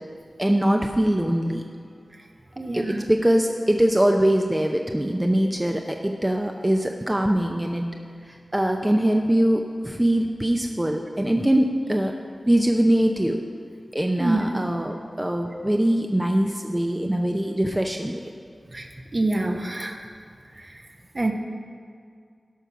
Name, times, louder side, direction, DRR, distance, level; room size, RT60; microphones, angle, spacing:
voice 1, 0.4-1.6 2.7-7.9 8.5-12.1 12.5-13.4 13.9-18.2, right 1 dB, 15° right, 3 dB, 0.7 m, -22 dB
voice 2, 2.6-3.1 14.2-14.4 18.7-18.9 19.1-20.0 21.1-21.3, right 2 dB, 45° right, 3 dB, 1.1 m, -25 dB
13.0 x 5.4 x 6.0 m, 2.2 s
cardioid pair, 40°, 0 cm